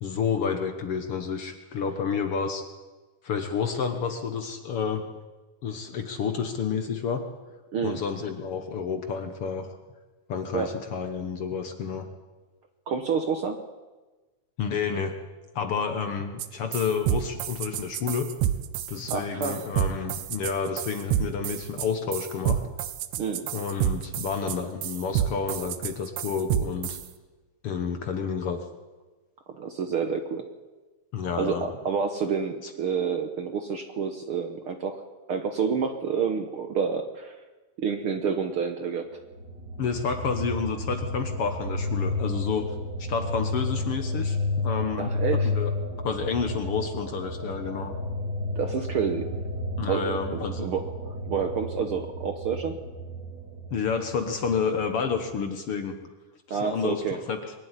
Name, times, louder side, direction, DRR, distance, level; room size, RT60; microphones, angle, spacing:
voice 1, 0.0-2.6 3.2-5.0 5.6-7.2 7.8-9.7 10.3-12.1 14.6-15.1 15.6-18.3 18.9-22.6 23.5-27.0 27.6-28.6 31.1-31.6 39.8-42.7 43.0-45.1 45.4-45.7 46.0-47.9 49.8-50.7 53.7-56.0 56.5-57.5, left 6 dB, 55° left, 6 dB, 1.8 m, -30 dB
voice 2, 12.9-13.6 19.1-19.7 23.2-23.5 29.6-30.5 31.4-35.0 35.3-37.4 37.8-39.1 45.0-45.5 48.5-49.3 49.9-52.8 56.5-57.2, right 6 dB, 60° right, 6 dB, 1.5 m, -29 dB
sound 1, 16.4-16.5 16.7-27.0, right 11 dB, 75° right, 2.2 m, -28 dB
sound 2, 39.3-55.5, left 2 dB, 35° right, 2.8 m, -32 dB
22.5 x 12.0 x 9.9 m, 1.2 s
omnidirectional pair, 3.6 m